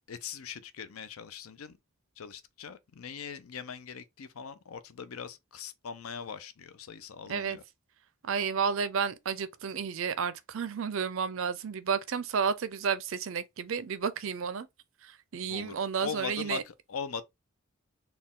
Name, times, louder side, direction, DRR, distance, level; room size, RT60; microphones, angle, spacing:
voice 1, 0.1-1.8 2.2-7.6 15.5-17.2, left 6 dB, 85° left, 0.5 m, -41 dB
voice 2, 8.2-14.7 15.0-16.6, right 6 dB, 65° right, 0.5 m, -31 dB
4.2 x 2.3 x 3.6 m
head